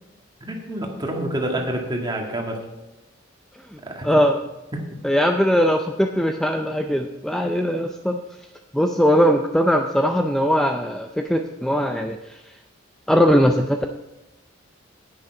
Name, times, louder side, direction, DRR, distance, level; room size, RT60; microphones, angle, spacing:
voice 1, 0.4-2.6 3.8-4.2, right 1 dB, 20° right, 1 dB, 1.8 m, -28 dB
voice 2, 4.0-4.4 5.0-8.2 8.7-12.4 13.1-13.9, equal, ahead, 4 dB, 0.4 m, -20 dB
10.5 x 8.9 x 4.6 m, 1.0 s
head